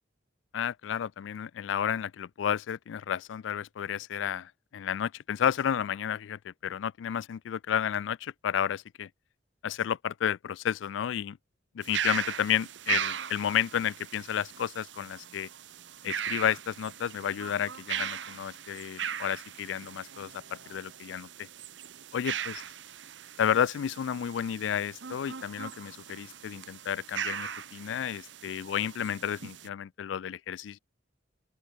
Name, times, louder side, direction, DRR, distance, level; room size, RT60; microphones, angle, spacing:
voice 1, 0.5-9.1 9.6-11.4 11.7-15.5 16.0-21.5 22.1-22.5 23.4-30.8, left 9 dB, 85° left, 0.3 m, -31 dB
sound 1, 11.8-29.7, right 8 dB, 75° right, 1.0 m, -39 dB
open air
head